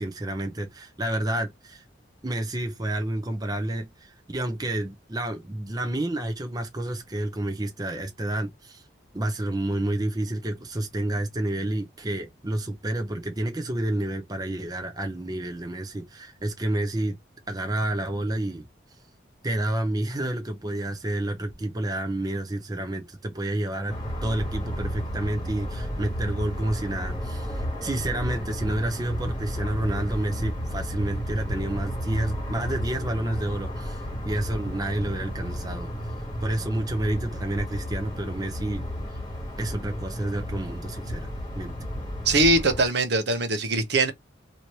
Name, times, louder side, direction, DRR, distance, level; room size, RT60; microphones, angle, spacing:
voice 1, 0.0-1.8 2.2-8.8 9.1-17.2 17.5-18.7 19.4-35.9 36.4-38.8 39.1-39.2 39.6-41.3 41.6-41.7, right 1 dB, 20° right, 0.6 m, -29 dB
sound 1, 23.9-42.9, equal, 20° left, 1.4 m, -32 dB
voice 2, 42.2-44.1, right 2 dB, 60° right, 0.8 m, -22 dB
3.1 x 2.7 x 2.9 m
head